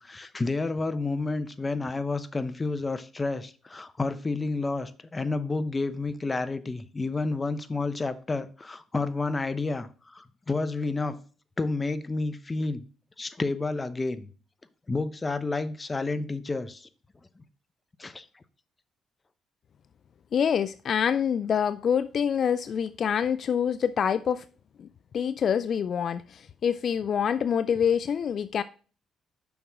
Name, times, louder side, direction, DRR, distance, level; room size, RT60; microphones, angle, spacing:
voice 1, 0.0-11.2 11.6-12.8 13.2-14.3 14.9-16.9 18.0-18.3, left 3 dB, 25° left, 0.8 m, -30 dB
voice 2, 20.3-24.4 24.8-24.9 25.1-28.6, left 8 dB, 55° left, 0.4 m, -26 dB
7.1 x 6.0 x 3.5 m
cardioid pair, 90°, 0 cm